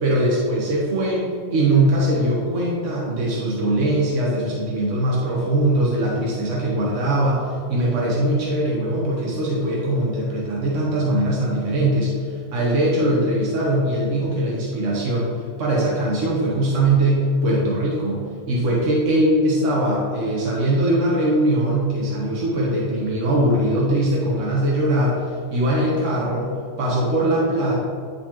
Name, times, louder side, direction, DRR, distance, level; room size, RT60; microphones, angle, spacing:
voice 1, 0.0-15.3 15.6-18.2 18.5-27.7, right 1 dB, 70° right, -4 dB, 1.4 m, -21 dB
10.0 x 4.1 x 2.9 m, 2.3 s
omnidirectional pair, 1.3 m